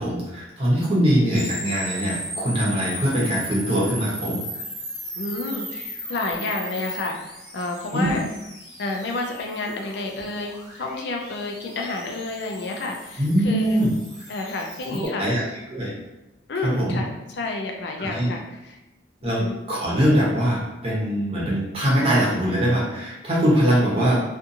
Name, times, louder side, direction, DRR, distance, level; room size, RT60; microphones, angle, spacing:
voice 1, 0.0-4.4 7.9-8.2 13.2-13.9 15.0-15.4 15.7-15.9 16.6-17.0 18.0-18.3 19.2-19.4 19.7-24.2, equal, 30° right, -6 dB, 0.8 m, -22 dB
sound 1, 1.3-15.1, equal, 5° right, 1.1 m, -37 dB
voice 2, 5.2-7.2 7.5-8.2 8.8-13.8 14.3-15.3 16.5-18.8 19.2-19.6 23.7-23.9, left 2 dB, 60° left, 2 dB, 0.4 m, -30 dB
2.6 x 2.4 x 2.6 m, 1.0 s
head